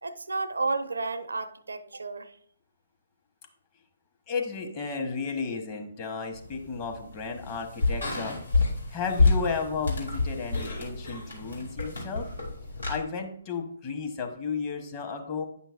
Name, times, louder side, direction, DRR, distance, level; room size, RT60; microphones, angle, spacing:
voice 1, 0.0-2.4, right 3 dB, 75° right, 0.5 m, -32 dB
voice 2, 4.3-8.6 8.9-12.3 12.9-15.5, left 5 dB, 30° left, 1.0 m, -33 dB
sound 1, 6.3-13.0, left 3 dB, 80° left, 2.3 m, -29 dB
Cough, 8.8-11.7, left 1 dB, 65° left, 3.0 m, -45 dB
9.1 x 5.7 x 2.4 m
figure-of-eight pair, 130°, 0 cm